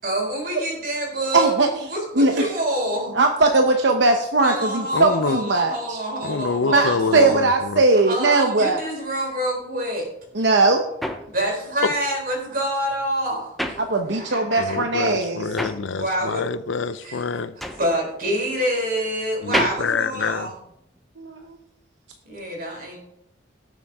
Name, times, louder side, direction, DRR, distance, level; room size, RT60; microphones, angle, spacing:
voice 1, 0.0-3.1 4.4-7.3 8.0-10.1 11.3-13.7 14.0-14.8 15.8-16.5 17.0-17.2 17.8-20.5 22.2-23.0, right 1 dB, 45° right, 4.1 m, -27 dB
voice 2, 1.3-1.7 2.1-2.5 3.1-6.0 6.7-8.8 10.3-10.8 13.8-15.4 21.2-21.6, right 3 dB, 65° right, 0.9 m, -19 dB
voice 3, 4.9-5.4 6.2-7.8 11.8-11.9 14.6-17.5 19.4-20.5, left 4 dB, 75° left, 0.5 m, -26 dB
sound 1, 10.2-14.5 14.8-21.1, equal, ahead, 0.7 m, -32 dB
17.5 x 7.2 x 3.6 m
head